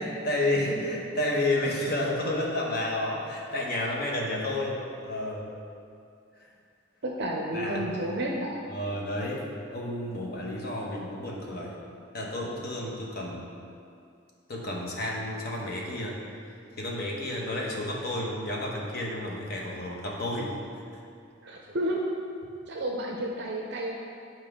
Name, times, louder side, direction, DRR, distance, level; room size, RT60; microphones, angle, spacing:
voice 1, 0.0-5.5 7.5-7.9 8.7-11.8 12.1-13.5 14.5-16.2 16.8-20.6, left 1 dB, 50° left, -2 dB, 1.0 m, -31 dB
voice 2, 7.0-8.6 21.4-22.1 22.7-23.9, right 1 dB, 60° right, -1 dB, 0.5 m, -31 dB
8.0 x 4.5 x 3.6 m, 2.4 s
head